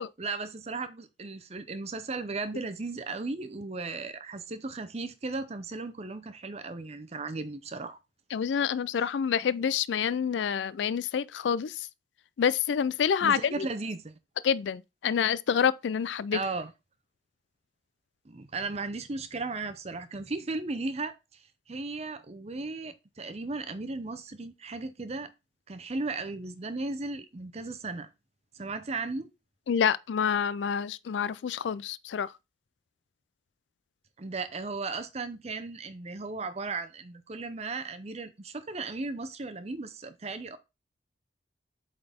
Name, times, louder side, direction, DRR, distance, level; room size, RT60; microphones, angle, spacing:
voice 1, 0.0-8.0 13.2-14.2 16.3-16.7 18.2-25.3 25.7-28.1 28.5-29.3 34.2-40.6, right 3 dB, 35° right, 0.7 m, -36 dB
voice 2, 8.3-11.9 12.4-13.7 14.4-16.4 29.7-32.3, left 7 dB, 80° left, 0.4 m, -27 dB
7.8 x 3.9 x 3.5 m
head